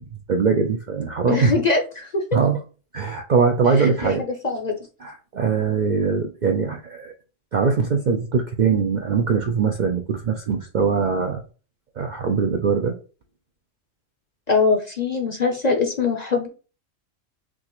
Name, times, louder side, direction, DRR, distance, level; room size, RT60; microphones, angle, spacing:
voice 1, 0.0-1.5 2.3-2.6 2.9-4.2 5.0-7.1 7.5-11.4 12.0-12.9, right 5 dB, 55° right, 3 dB, 0.5 m, -22 dB
voice 2, 1.3-2.2 3.8-4.1 4.4-4.8 14.5-16.5, left 4 dB, 40° left, 3 dB, 0.7 m, -22 dB
6.1 x 2.5 x 3.0 m, 0.35 s
omnidirectional pair, 1.3 m